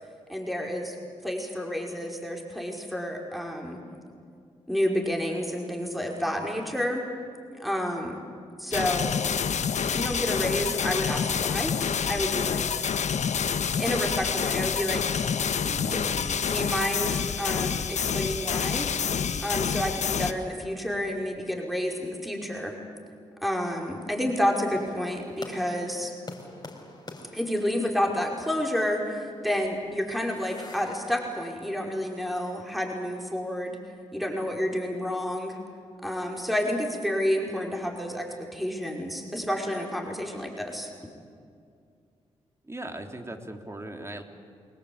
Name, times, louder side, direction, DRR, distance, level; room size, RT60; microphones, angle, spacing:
voice 1, 0.3-1.0 1.2-3.8 4.7-7.0 7.6-8.2 8.6-9.1 9.9-11.7 12.1-12.8 13.8-15.1 15.9-16.0 16.5-18.9 19.4-22.8 23.4-26.1 27.3-33.8 34.1-35.6 36.0-40.9, equal, ahead, 0 dB, 5.3 m, -29 dB
sound 1, 8.7-20.3, left 7 dB, 65° left, 1.3 m, -28 dB
voice 2, 15.6-16.3 42.6-44.2, right 1 dB, 20° right, 4 dB, 3.4 m, -38 dB
sound 2, 24.7-33.8, left 2 dB, 30° left, 4.6 m, -49 dB
29.5 x 21.0 x 8.8 m, 2.3 s
supercardioid pair, 55°, 13 cm